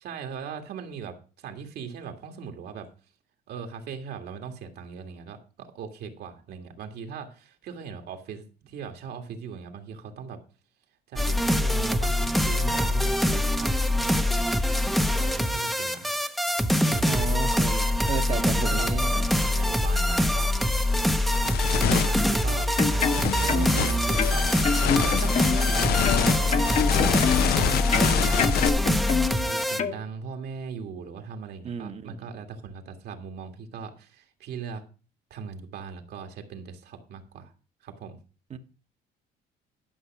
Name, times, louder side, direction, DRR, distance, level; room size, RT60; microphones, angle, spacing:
voice 1, 0.0-2.9 3.5-10.4 11.1-14.3 15.1-16.2 16.8-17.4 18.3-20.5 21.7-27.7 28.1-28.8 29.4-34.8 35.3-37.5 37.8-38.2, right 6 dB, 70° right, 1.9 m, -39 dB
sound 1, 11.2-29.8, left 1 dB, ahead, 0.7 m, -24 dB
voice 2, 17.0-19.3 31.6-32.2 38.5-38.6, right 7 dB, 40° right, 1.0 m, -33 dB
sound 2, 19.8-20.0 20.5-28.7, left 10 dB, 70° left, 0.7 m, -28 dB
sound 3, 22.6-23.8 24.2-25.7 26.0-27.6 27.9-29.4 29.8-30.0, left 6 dB, 40° left, 1.1 m, -27 dB
11.5 x 5.8 x 5.9 m
cardioid pair, 110°, 17 cm